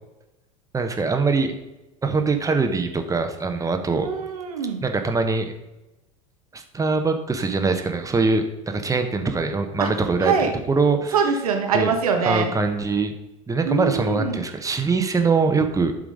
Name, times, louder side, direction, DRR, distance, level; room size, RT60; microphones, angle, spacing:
voice 1, 0.7-1.5 2.0-4.1 4.8-5.5 6.5-10.3 10.7-11.4 11.7-11.9 12.2-13.1 13.5-15.9, right 4 dB, 20° right, 6 dB, 1.1 m, -23 dB
voice 2, 4.0-4.8 9.8-9.9 10.2-10.5 11.1-12.5 13.6-14.4, right 5 dB, 85° right, 4 dB, 1.2 m, -23 dB
11.0 x 3.8 x 4.9 m, 0.96 s
hypercardioid pair, 85°, 18 cm